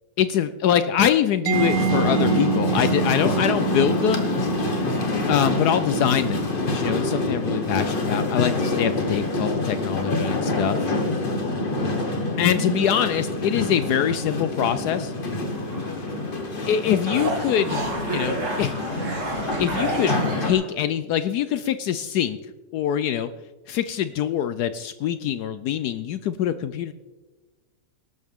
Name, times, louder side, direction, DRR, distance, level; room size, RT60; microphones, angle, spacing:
voice 1, 0.2-4.3 5.3-10.9 12.4-15.1 16.7-18.7 19.6-22.4 22.7-23.3 23.7-26.9, left 9 dB, 75° left, 12 dB, 1.1 m, -24 dB
sound 1, 1.5-20.5, left 2 dB, 30° left, 1.5 m, -26 dB
Mallet percussion, 1.5-9.0, right 9 dB, 70° right, 0.8 m, -30 dB
sound 2, 13.7-13.8 14.4-14.5 15.5-16.4 16.7-20.7, right 2 dB, 45° right, 2.5 m, -30 dB
19.0 x 12.0 x 3.6 m, 1.2 s
omnidirectional pair, 1.9 m